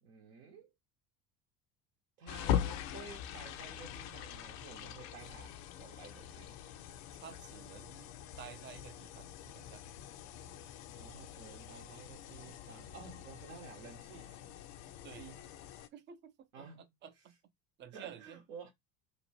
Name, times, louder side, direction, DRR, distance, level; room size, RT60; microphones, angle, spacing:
voice 1, 0.0-0.7 2.2-6.6 11.0-14.3 15.2-15.4 16.5-16.9 17.9-18.7, right 5 dB, 70° right, 0.9 m, -52 dB
sound 1, 2.3-15.9, left 10 dB, 55° left, 0.5 m, -42 dB
voice 2, 7.2-9.8 15.0-15.3 15.9-17.4 17.8-18.4, right 8 dB, 25° right, 0.4 m, -52 dB
2.9 x 2.1 x 2.7 m
hypercardioid pair, 65°, 49 cm